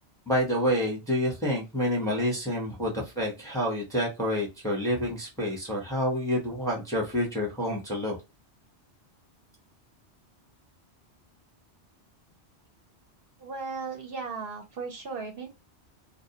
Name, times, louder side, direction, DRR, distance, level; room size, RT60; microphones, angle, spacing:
voice 1, 0.3-8.2, equal, 5° left, -1 dB, 0.7 m, -28 dB
voice 2, 13.4-15.5, right 4 dB, 60° right, 3 dB, 0.8 m, -36 dB
2.2 x 2.1 x 2.7 m, 0.24 s
omnidirectional pair, 1.2 m